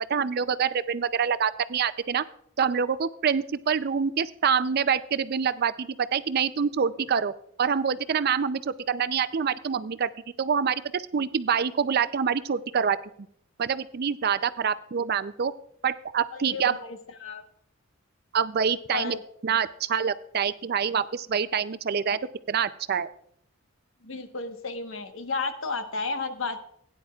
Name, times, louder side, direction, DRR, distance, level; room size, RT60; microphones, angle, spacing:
voice 1, 0.1-2.2 2.6-7.3 7.6-10.1 10.4-13.0 13.6-15.5 15.8-16.8 18.3-19.2 19.4-22.2 22.5-23.1, right 7 dB, 50° right, 14 dB, 0.4 m, -26 dB
voice 2, 16.3-17.4 18.9-19.2 24.0-26.7, left 3 dB, 70° left, 7 dB, 1.2 m, -33 dB
17.0 x 10.0 x 2.4 m, 0.68 s
head